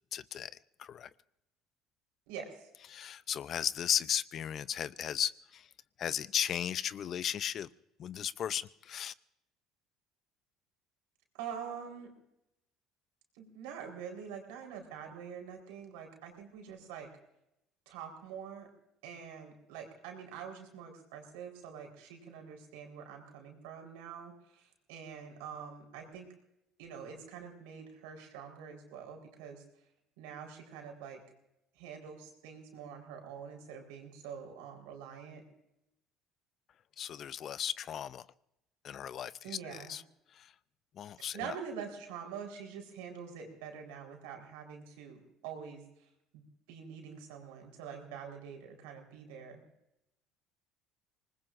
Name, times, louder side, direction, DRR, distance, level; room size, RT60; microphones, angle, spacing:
voice 1, 0.1-0.5 0.8-1.1 2.9-5.7 6.0-7.7 8.0-9.1 37.0-38.3 38.8-40.0 40.3-40.5 41.0-41.5, left 9 dB, 50° left, 17 dB, 0.5 m, -35 dB
voice 2, 2.3-2.7 11.3-12.1 13.3-17.1 17.9-18.7 19.0-26.3 26.8-29.6 30.2-31.2 31.7-35.4 39.4-39.9 41.2-49.6, right 7 dB, 90° right, 3 dB, 4.2 m, -45 dB
26.0 x 20.0 x 2.6 m, 0.85 s
supercardioid pair, 105°, 0 cm